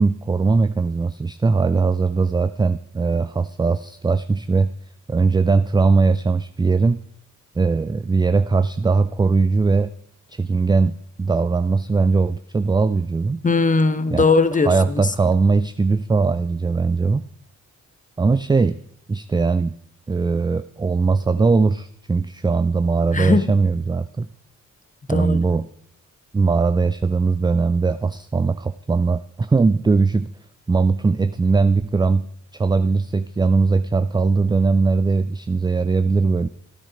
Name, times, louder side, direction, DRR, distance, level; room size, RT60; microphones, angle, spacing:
voice 1, 0.0-4.7 5.1-7.0 7.6-9.9 10.3-13.4 14.1-14.3 14.7-17.2 18.2-18.8 19.1-19.7 20.1-24.3 25.1-25.7 26.3-30.3 30.7-32.3 32.5-36.5, right 4 dB, 15° right, 0.4 m, -20 dB
voice 2, 13.4-15.1 23.1-23.5 25.1-25.4, left 3 dB, 25° left, 0.9 m, -19 dB
13.0 x 9.4 x 5.0 m
cardioid pair, 65°, 30 cm